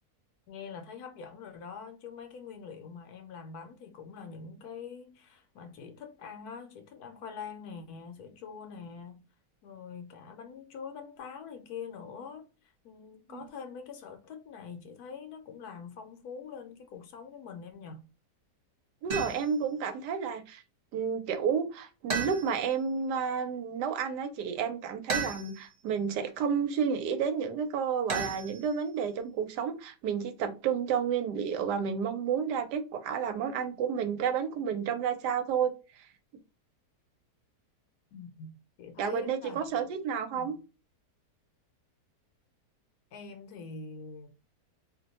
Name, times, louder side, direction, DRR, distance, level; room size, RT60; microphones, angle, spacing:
voice 1, 0.5-9.2 9.6-12.5 12.8-18.1 38.1-39.9 40.3-40.6 43.1-44.3, left 6 dB, 75° left, 1.1 m, -44 dB
voice 2, 19.0-20.6 20.9-35.7 39.0-40.5, right 7 dB, 85° right, 1.2 m, -31 dB
sound 1, 19.1-19.6 22.1-22.8 25.1-25.8 28.1-29.0, right 4 dB, 40° right, 1.3 m, -35 dB
2.8 x 2.1 x 4.0 m
omnidirectional pair, 1.7 m